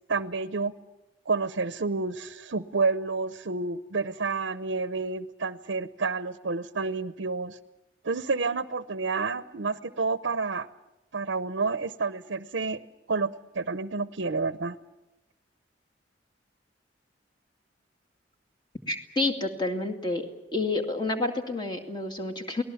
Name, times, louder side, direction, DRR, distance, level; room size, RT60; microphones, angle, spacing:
voice 1, 0.1-0.7 1.3-7.6 8.0-10.7 11.1-12.8 13.1-14.8, right 4 dB, 75° right, 13 dB, 0.7 m, -29 dB
voice 2, 18.9-20.3 20.5-22.6, left 2 dB, 25° left, 4 dB, 2.3 m, -29 dB
29.0 x 19.5 x 7.2 m, 0.94 s
head